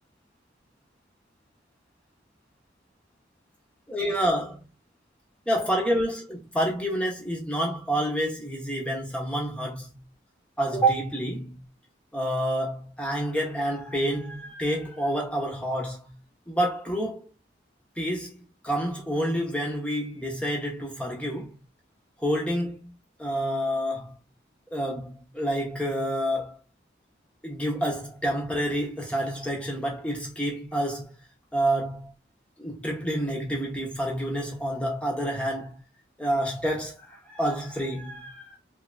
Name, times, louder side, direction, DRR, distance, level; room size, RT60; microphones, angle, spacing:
voice 1, 3.9-4.6 5.5-10.0 10.6-11.6 12.1-16.2 16.5-17.3 18.0-21.6 22.2-22.9 23.2-24.1 24.7-26.6 27.4-31.2 31.5-32.1 32.6-35.8 36.2-38.6, right 1 dB, 5° left, 0.9 m, -28 dB
3.3 x 2.9 x 2.5 m
head